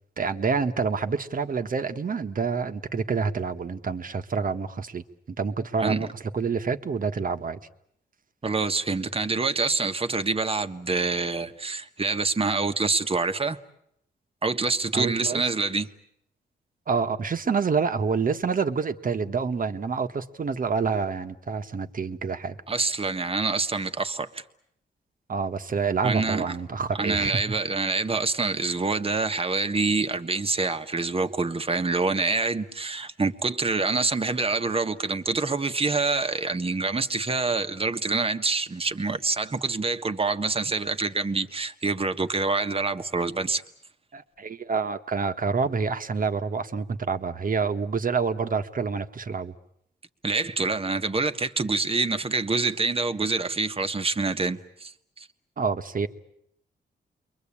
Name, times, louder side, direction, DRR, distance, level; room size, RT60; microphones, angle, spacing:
voice 1, 0.2-6.1 6.3-7.6 14.9-15.4 16.9-22.6 25.3-27.3 44.1-49.5 55.6-56.1, right 5 dB, 45° right, 1.6 m, -27 dB
voice 2, 8.4-13.6 14.4-15.9 22.7-24.4 26.0-26.6 26.9-43.6 50.2-55.3, right 3 dB, 30° right, 1.6 m, -26 dB
29.5 x 23.0 x 8.8 m
cardioid pair, 80°, 19 cm